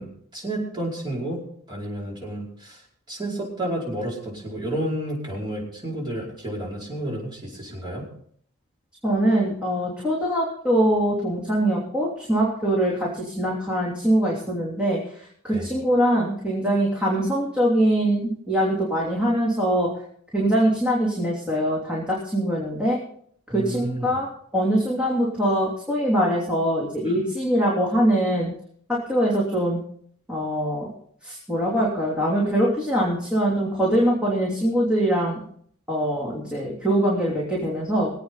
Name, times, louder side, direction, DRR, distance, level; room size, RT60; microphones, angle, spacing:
voice 1, 0.0-1.4 1.7-2.8 3.1-8.1 15.5-15.7 23.5-24.2 27.1-27.2, right 1 dB, 20° right, -4 dB, 5.1 m, -31 dB
voice 2, 9.0-19.9 20.3-23.0 23.5-24.3 24.5-28.5 28.9-29.8 30.3-30.9 31.2-35.4 35.9-38.1, right 1 dB, 5° right, -5 dB, 3.0 m, -23 dB
23.5 x 8.6 x 4.0 m, 0.62 s
head